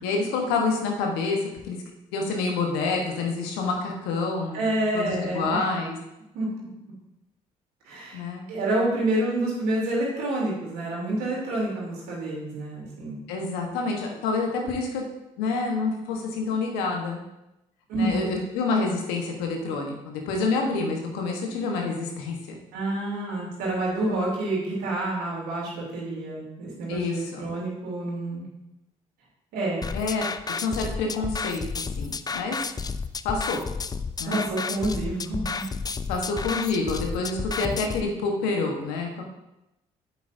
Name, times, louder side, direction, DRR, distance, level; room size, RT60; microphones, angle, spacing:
voice 1, 0.0-1.8 2.1-4.7 4.9-6.0 8.1-8.4 13.3-15.0 15.4-17.2 17.9-22.6 26.9-27.5 29.9-30.3 30.6-31.6 32.0-32.6 33.2-33.6 34.2-34.4 36.1-39.2, left 3 dB, 80° left, 1 dB, 1.3 m, -27 dB
voice 2, 4.5-5.6 6.3-6.7 7.8-8.2 8.5-13.2 17.9-18.4 22.7-28.5 29.5-29.9 34.3-35.6, right 1 dB, 75° right, -4 dB, 3.0 m, -28 dB
sound 1, 29.8-38.0, left 4 dB, 25° left, 0.4 m, -32 dB
8.4 x 7.9 x 2.7 m, 0.91 s
hypercardioid pair, 50°, 16 cm